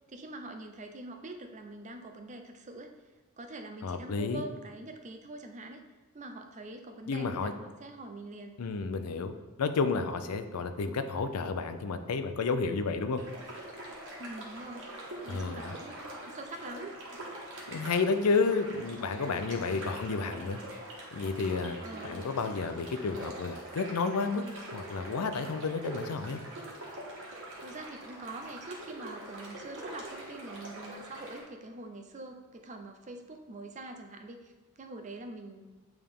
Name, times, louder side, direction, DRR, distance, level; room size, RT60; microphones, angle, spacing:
voice 1, 0.1-2.9 3.4-5.8 6.1-8.6 14.2-17.3 21.8-22.3 27.6-34.5 34.8-35.7, right 2 dB, 35° right, 5 dB, 0.5 m, -44 dB
voice 2, 3.8-4.4 7.1-7.5 8.6-13.2 15.3-15.8 17.7-20.6 21.1-24.5 24.7-26.4, left 4 dB, 85° left, 9 dB, 0.5 m, -31 dB
sound 1, 13.1-31.4, right 1 dB, 60° right, 1.4 m, -44 dB
8.8 x 3.5 x 3.6 m, 1.3 s
head